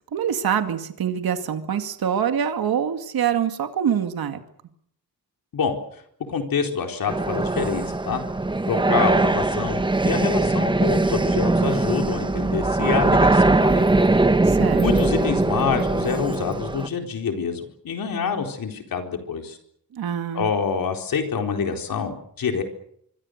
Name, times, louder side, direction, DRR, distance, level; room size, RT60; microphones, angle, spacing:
voice 1, 0.1-4.4 14.5-14.8 19.9-20.5, right 8 dB, 75° right, 7 dB, 2.3 m, -25 dB
voice 2, 5.5-6.0 6.3-8.2 8.7-13.9 14.8-19.6 20.3-22.6, left 6 dB, 70° left, 4 dB, 4.3 m, -26 dB
sound 1, 7.1-16.9, right 2 dB, 15° right, 1.1 m, -21 dB
25.0 x 25.0 x 6.7 m, 0.69 s
wide cardioid pair, 140°, 36 cm